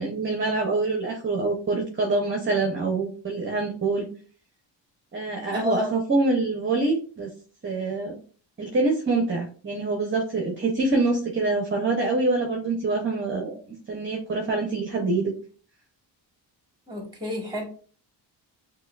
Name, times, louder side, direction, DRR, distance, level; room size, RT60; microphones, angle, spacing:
voice 1, 0.0-4.1 5.1-7.3 7.6-8.1 8.6-13.6 13.9-15.3, right 3 dB, 25° right, 1 dB, 0.8 m, -25 dB
voice 2, 5.5-5.9 16.9-17.7, left 2 dB, 10° right, 1 dB, 1.6 m, -30 dB
6.4 x 2.2 x 2.4 m, 0.41 s
cardioid pair, 105°, 44 cm